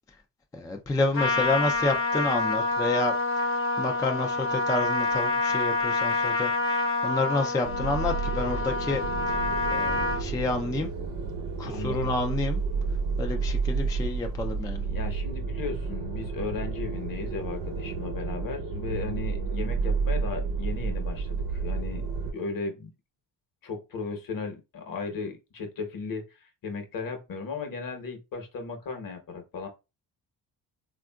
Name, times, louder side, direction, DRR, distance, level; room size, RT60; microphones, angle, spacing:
voice 1, 0.5-9.0 9.7-10.9 11.6-12.6 13.2-14.8, left 2 dB, 10° left, 0.3 m, -29 dB
Trumpet, 1.1-10.2, left 2 dB, 30° left, 0.8 m, -27 dB
sound 1, 7.6-22.3, right 4 dB, 65° right, 0.8 m, -31 dB
voice 2, 11.6-12.1 14.7-22.0 22.3-22.9 23.6-29.7, left 4 dB, 50° left, 1.1 m, -36 dB
3.5 x 2.5 x 2.2 m
cardioid pair, 95°, 42 cm